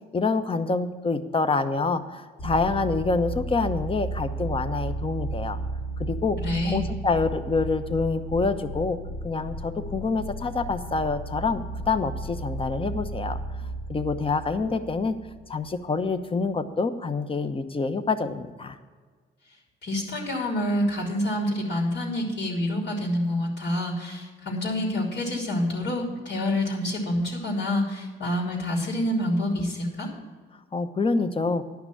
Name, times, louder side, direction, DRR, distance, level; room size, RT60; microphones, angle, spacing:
voice 1, 0.1-5.6 6.0-6.4 6.6-9.0 9.2-15.2 15.5-18.8 30.7-31.6, left 4 dB, 25° left, 10 dB, 0.9 m, -26 dB
sound 1, 2.4-15.8, right 2 dB, 80° left, 3.3 m, -34 dB
voice 2, 6.4-6.8 19.8-30.1, left 1 dB, 65° left, -2 dB, 3.0 m, -27 dB
11.0 x 5.9 x 8.4 m, 1.5 s
cardioid pair, 90°, 20 cm